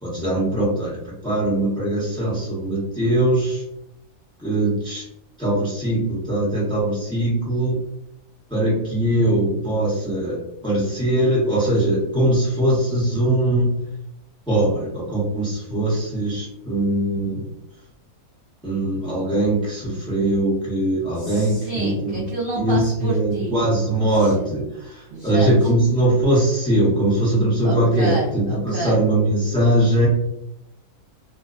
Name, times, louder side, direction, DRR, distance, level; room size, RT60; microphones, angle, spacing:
voice 1, 0.0-3.6 4.4-5.0 5.4-7.8 8.5-13.7 14.5-17.4 18.6-22.2 22.5-30.1, right 1 dB, 5° left, -8 dB, 0.8 m, -21 dB
voice 2, 21.2-23.6 24.1-24.5 25.1-25.5 27.6-29.0, right 2 dB, 65° right, -5 dB, 0.6 m, -29 dB
2.6 x 2.1 x 2.4 m, 0.84 s
omnidirectional pair, 1.5 m